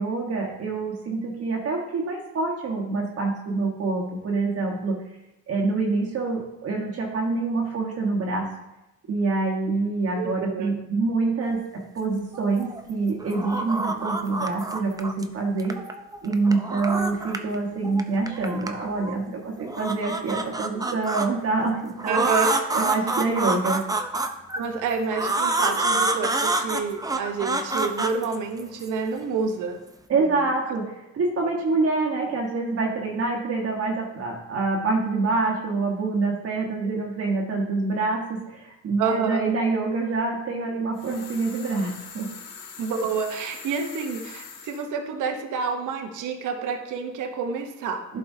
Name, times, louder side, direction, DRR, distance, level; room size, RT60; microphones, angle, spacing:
voice 1, 0.0-5.0 5.5-8.5 9.1-15.8 16.2-22.2 22.7-23.8 30.1-42.3 48.1-48.2, right 3 dB, 50° right, -2 dB, 1.2 m, -26 dB
voice 2, 10.2-10.7 22.1-22.6 24.6-29.8 30.2-30.3 36.8-37.0 39.0-39.4 42.8-48.1, right 5 dB, 85° right, 5 dB, 0.9 m, -28 dB
sound 1, 12.3-12.9 13.2-15.2 15.6-17.6 17.8-19.2 19.6-21.3 22.0-24.6 25.1-28.9, right 2 dB, 10° right, 0.6 m, -27 dB
sound 2, 40.9-44.9, left 5 dB, 85° left, 1.0 m, -42 dB
11.0 x 4.7 x 2.7 m, 0.96 s
cardioid pair, 90°, 30 cm